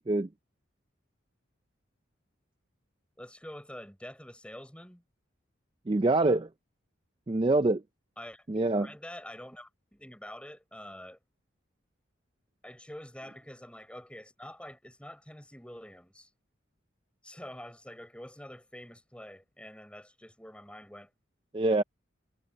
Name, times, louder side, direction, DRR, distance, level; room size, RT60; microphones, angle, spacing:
voice 1, 3.2-5.0 8.2-8.5 8.8-11.2 12.6-16.3 17.2-21.1, left 1 dB, 5° left, 6.5 m, -46 dB
voice 2, 5.9-6.5 7.3-7.8 8.5-8.9 21.5-21.8, right 2 dB, 25° right, 0.4 m, -25 dB
head